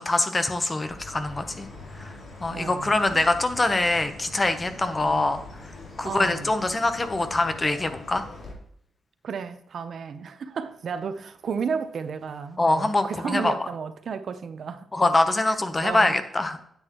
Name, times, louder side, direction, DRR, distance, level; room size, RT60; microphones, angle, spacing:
voice 1, 0.0-1.7 1.9-2.1 2.4-8.2 12.6-13.5 14.9-16.6, left 2 dB, 25° left, 0.9 m, -24 dB
Chirp tweet, 0.7-8.5, left 2 dB, 60° left, 3.4 m, -43 dB
voice 2, 2.5-3.3 5.0-5.4 6.0-6.5 9.2-14.9 15.5-15.6 15.8-16.2, right 6 dB, 60° right, 0.7 m, -33 dB
9.5 x 8.1 x 3.0 m
cardioid pair, 115°, 0 cm